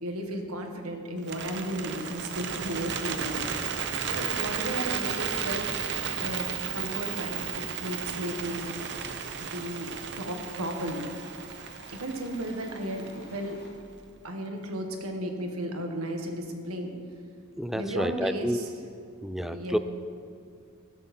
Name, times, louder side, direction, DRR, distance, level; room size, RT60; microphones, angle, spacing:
voice 1, 0.0-3.5 4.1-5.7 6.2-8.6 9.4-11.1 11.9-13.6 14.2-16.9 17.7-18.7 19.5-19.8, right 1 dB, 75° right, 4 dB, 1.7 m, -34 dB
Bird, 1.2-13.4, right 7 dB, 55° right, 0.8 m, -34 dB
sound 1, 3.5-13.7, left 1 dB, 45° left, 2.4 m, -52 dB
voice 2, 17.6-18.6 19.2-19.8, equal, ahead, 11 dB, 0.4 m, -29 dB
16.5 x 13.0 x 4.4 m, 2.2 s
head